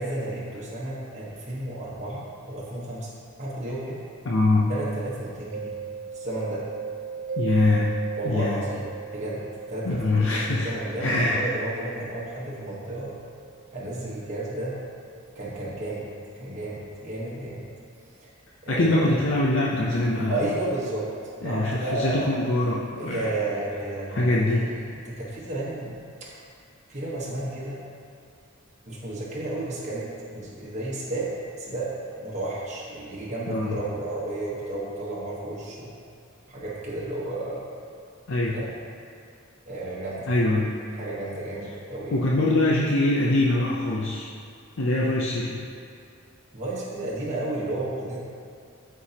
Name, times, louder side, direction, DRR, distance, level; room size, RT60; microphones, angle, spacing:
voice 1, 0.0-3.1 3.4-4.0 4.7-5.8 6.1-6.6 8.2-13.2 13.7-14.8 15.3-16.1 16.4-17.6 18.2-18.3 18.6-19.1 20.3-21.1 21.4-22.3 23.0-26.4 26.9-27.8 28.9-31.3 31.6-35.9 36.5-37.6 38.5-38.7 39.7-40.3 41.0-42.2 46.5-48.2, right 2 dB, 35° right, -7 dB, 1.2 m, -32 dB
voice 2, 4.2-4.7 7.4-8.0 8.2-8.6 9.8-11.4 18.7-20.4 21.4-23.2 24.1-24.7 33.5-33.8 38.3-38.6 40.3-40.7 42.1-44.3 44.8-45.6, left 2 dB, 65° left, -4 dB, 0.6 m, -23 dB
Mallet percussion, 5.5-15.1, right 6 dB, 60° right, 0.4 m, -38 dB
12.5 x 4.6 x 2.9 m, 2.4 s
head